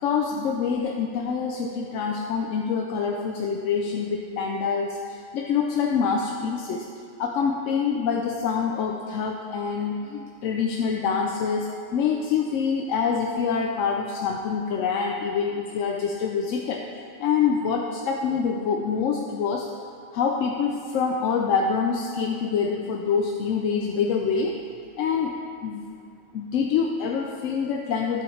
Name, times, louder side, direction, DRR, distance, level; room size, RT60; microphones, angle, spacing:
voice 1, 0.0-6.9 7.2-16.8 17.2-19.7 20.1-24.6 25.0-25.4 25.6-25.8 26.3-28.2, left 6 dB, 85° left, 1 dB, 0.9 m, -26 dB
14.0 x 5.4 x 3.2 m, 2.4 s
omnidirectional pair, 1.3 m